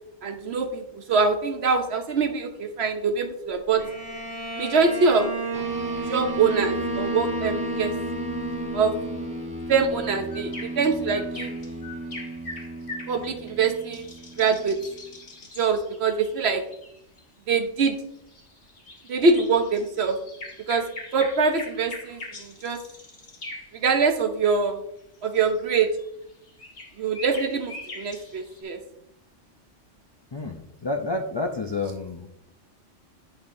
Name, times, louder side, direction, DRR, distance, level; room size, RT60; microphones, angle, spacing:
voice 1, 0.2-3.8 4.6-5.3 6.1-7.9 8.7-8.9 9.7-10.5 10.8-11.5 13.1-14.1 14.4-14.8 15.5-16.6 17.5-18.0 19.1-20.2 20.7-22.8 23.7-24.8 25.2-25.9 27.0-28.8, right 4 dB, 60° right, 7 dB, 1.0 m, -24 dB
Bowed string instrument, 3.8-9.5, right 2 dB, 80° right, 2.2 m, -31 dB
sound 1, 5.5-15.3, equal, 5° right, 1.0 m, -36 dB
sound 2, 10.3-17.2 18.1-24.0 25.0-28.6, left 2 dB, 80° left, 1.9 m, -42 dB
voice 2, 30.3-32.3, left 2 dB, 45° left, 3 dB, 0.3 m, -29 dB
9.8 x 5.3 x 2.6 m, 0.76 s
omnidirectional pair, 1.3 m